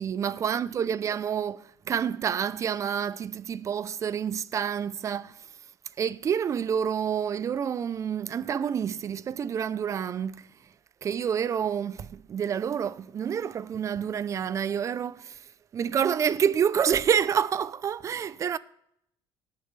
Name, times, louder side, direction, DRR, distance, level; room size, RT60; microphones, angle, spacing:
voice 1, 0.0-5.5 6.0-10.5 11.0-15.5 15.7-18.6, right 8 dB, 30° right, 0.4 m, -28 dB
18.0 x 7.0 x 3.1 m
cardioid pair, 140°, 10 cm